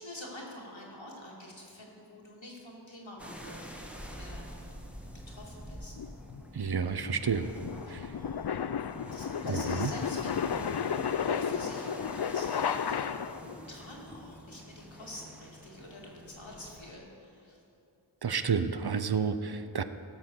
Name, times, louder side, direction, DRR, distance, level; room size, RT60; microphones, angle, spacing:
voice 1, 0.0-4.5 5.3-5.9 7.9-8.1 9.1-13.0 13.7-17.6, left 1 dB, 80° left, -3 dB, 2.4 m, -47 dB
sound 1, 3.2-16.9, equal, 5° right, 1.4 m, -47 dB
sound 2, 6.0-13.6, left 7 dB, 60° left, 0.5 m, -33 dB
voice 2, 6.5-7.5 7.9-8.2 9.4-9.9 18.2-19.8, right 6 dB, 55° right, 11 dB, 0.6 m, -30 dB
sound 3, 8.1-14.4, left 1 dB, 20° left, 0.9 m, -53 dB
16.5 x 6.1 x 7.0 m, 2.8 s
wide cardioid pair, 40°, 46 cm